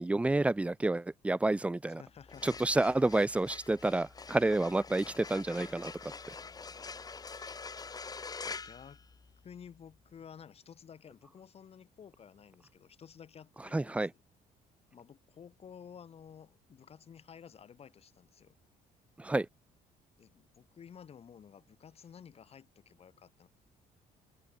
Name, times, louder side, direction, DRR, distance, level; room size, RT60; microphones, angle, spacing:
voice 1, 0.0-2.0 2.4-5.9 13.7-14.1 19.2-19.5, right 2 dB, 10° right, 0.7 m, -29 dB
voice 2, 2.0-2.6 6.4-7.6 8.4-9.0 9.4-14.2 14.9-18.6 20.2-23.5, left 7 dB, 40° left, 5.6 m, -53 dB
sound 1, 2.2-9.6, left 4 dB, 25° left, 5.1 m, -45 dB
open air
cardioid pair, 135°, 16 cm